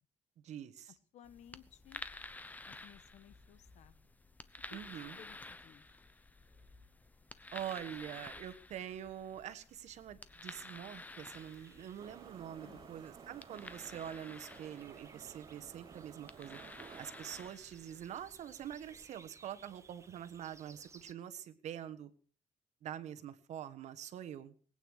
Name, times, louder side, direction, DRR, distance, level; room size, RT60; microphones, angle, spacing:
voice 1, 0.4-0.9 4.7-5.2 7.5-16.6 17.0-22.1 22.8-24.5, right 10 dB, 70° right, 12 dB, 1.4 m, -45 dB
voice 2, 1.1-2.0 2.7-3.9 4.7-5.8 12.6-13.0, left 9 dB, 70° left, 14 dB, 1.3 m, -58 dB
sound 1, 1.2-19.1, left 2 dB, 15° left, 0.9 m, -52 dB
sound 2, 11.3-21.1, right 4 dB, 25° right, 0.9 m, -62 dB
Subway metro underground, 12.0-17.5, right 7 dB, 40° right, 1.3 m, -54 dB
20.0 x 9.2 x 6.5 m, 0.43 s
cardioid pair, 145°, 12 cm